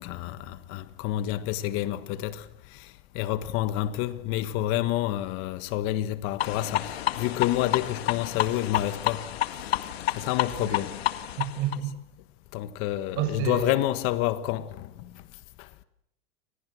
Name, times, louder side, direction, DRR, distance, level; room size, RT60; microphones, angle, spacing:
voice 1, 0.0-2.4 3.1-9.2 10.1-11.0 12.5-14.9, left 14 dB, 45° left, 1.5 m, -28 dB
sound 1, 6.4-11.8, left 13 dB, 80° left, 1.9 m, -30 dB
voice 2, 10.5-10.9 11.4-11.9 13.2-13.8, right 9 dB, 45° right, 7.4 m, -30 dB
30.0 x 27.0 x 6.4 m
supercardioid pair, 145°, 30 cm